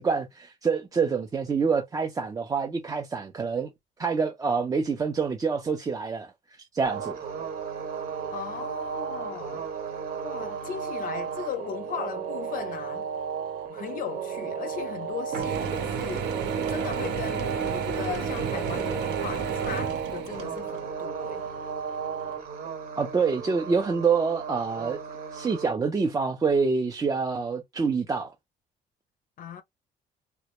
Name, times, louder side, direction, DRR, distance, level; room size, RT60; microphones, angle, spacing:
voice 1, 0.0-3.7 4.0-6.3 6.7-7.2 23.0-25.0 25.3-28.3, right 5 dB, 20° right, 0.3 m, -26 dB
sound 1, 6.8-25.7, right 7 dB, 60° right, 0.9 m, -34 dB
voice 2, 8.3-9.6 10.2-13.1 13.7-16.3 16.7-21.5 29.4-29.6, left 8 dB, 55° left, 0.4 m, -37 dB
Mechanisms / Drill, 15.3-20.8, right 6 dB, 85° right, 0.6 m, -31 dB
2.1 x 2.0 x 2.9 m
cardioid pair, 110°, 17 cm